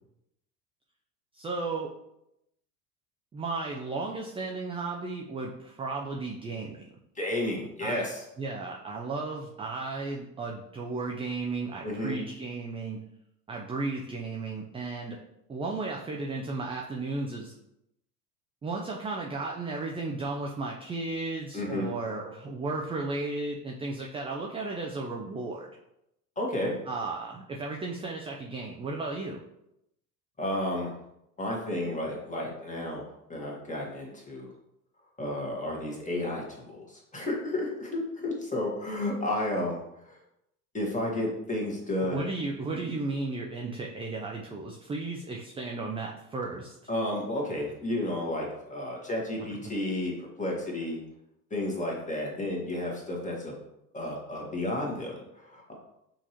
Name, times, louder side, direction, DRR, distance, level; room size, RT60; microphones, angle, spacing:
voice 1, 1.3-1.9 3.3-6.9 7.8-8.0 8.4-13.0 13.5-15.2 15.5-17.5 18.6-25.7 26.9-29.4 42.0-46.8 49.4-49.5, right 3 dB, 15° right, 0 dB, 0.4 m, -34 dB
voice 2, 7.1-8.2 11.8-12.1 21.5-21.9 26.4-26.7 30.4-30.9 31.4-33.0 33.3-34.5 35.2-40.2 40.7-42.3 46.9-51.0 51.5-53.5 53.9-55.7, left 1 dB, 15° left, -2 dB, 1.6 m, -32 dB
5.9 x 2.9 x 2.9 m, 0.83 s
hypercardioid pair, 75°, 45 cm